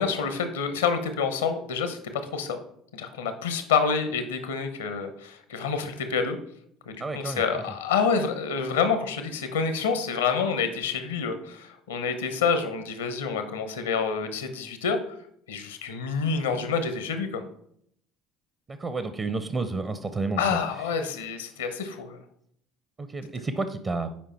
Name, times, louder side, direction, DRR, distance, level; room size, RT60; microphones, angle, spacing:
voice 1, 0.0-2.0 2.3-2.6 2.9-6.4 6.9-15.0 15.5-17.4 20.4-22.2, left 5 dB, 75° left, 9 dB, 0.8 m, -27 dB
voice 2, 7.0-7.4 18.7-20.6 23.0-24.1, right 3 dB, 30° right, 11 dB, 0.6 m, -30 dB
7.4 x 5.0 x 4.3 m, 0.68 s
figure-of-eight pair, 60°, 0 cm